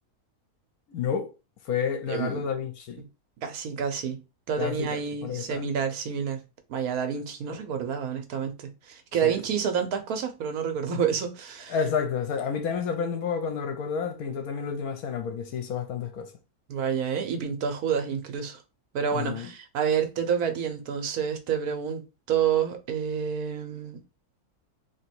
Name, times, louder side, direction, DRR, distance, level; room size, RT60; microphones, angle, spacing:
voice 1, 0.9-1.3 1.6-3.0 4.6-5.6 7.5-7.6 9.2-9.4 11.7-16.3 19.1-19.5, left 6 dB, 75° left, 1.2 m, -30 dB
voice 2, 2.1-2.4 3.0-3.1 3.4-4.2 4.5-6.4 6.7-11.7 16.7-18.6 18.9-24.0, right 7 dB, 75° right, 1.3 m, -29 dB
3.0 x 3.0 x 4.4 m
omnidirectional pair, 1.6 m